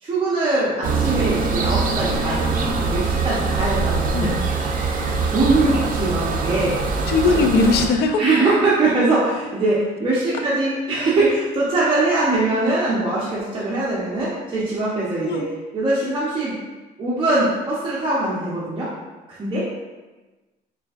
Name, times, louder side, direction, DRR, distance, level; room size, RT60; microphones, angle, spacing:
voice 1, 0.0-4.4 5.3-6.8 7.3-7.4 8.2-15.4 15.7-16.5 17.0-18.9 19.3-19.7, right 2 dB, 30° right, -8 dB, 0.9 m, -22 dB
sound 1, 0.8-7.9, right 4 dB, 55° right, 0.6 m, -23 dB
voice 2, 7.1-8.2 15.3-15.5, left 3 dB, 75° left, 5 dB, 0.5 m, -19 dB
4.4 x 3.4 x 2.4 m, 1.2 s
cardioid pair, 110°, 17 cm